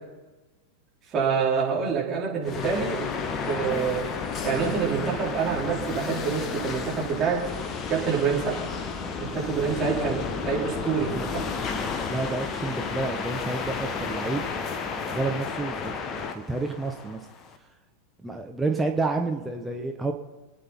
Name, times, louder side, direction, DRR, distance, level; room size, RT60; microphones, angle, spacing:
voice 1, 1.1-4.1 4.4-7.4 7.9-8.6 9.2-11.4, right 6 dB, 30° right, -4 dB, 4.7 m, -27 dB
sound 1, 2.4-17.6, left 5 dB, 30° left, 1.2 m, -32 dB
voice 2, 12.1-14.4 15.1-17.3 18.2-20.1, right 3 dB, 10° right, 2 dB, 1.2 m, -29 dB
27.0 x 9.2 x 4.5 m, 1.2 s
figure-of-eight pair, 90°, 0 cm